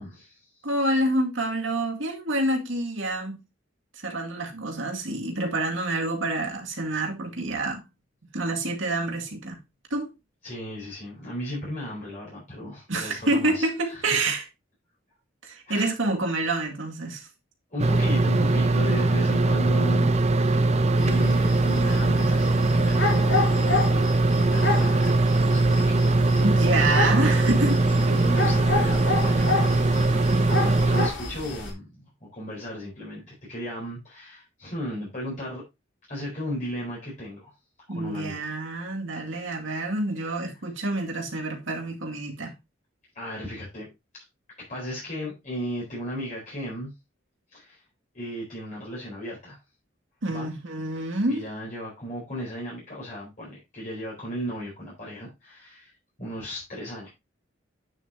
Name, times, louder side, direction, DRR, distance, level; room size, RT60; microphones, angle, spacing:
voice 1, 0.0-0.5 10.4-14.2 15.7-15.9 17.7-23.8 24.2-26.5 27.9-35.6 36.1-37.5 37.9-38.4 43.1-43.9 44.6-46.9 47.5-47.8 48.1-49.6 50.3-50.5 51.3-55.9 56.2-57.1, equal, 40° left, 4.4 m, -36 dB
voice 2, 0.6-3.4 4.0-7.8 8.3-9.6 9.9-10.1 12.9-14.4 15.4-17.3 26.4-28.2 37.9-42.5 50.2-51.5, right 2 dB, 85° right, 2.1 m, -27 dB
sound 1, 17.8-31.1, right 2 dB, 35° right, 0.6 m, -21 dB
sound 2, 21.0-31.7, left 3 dB, 65° left, 3.2 m, -30 dB
9.2 x 6.7 x 2.8 m
head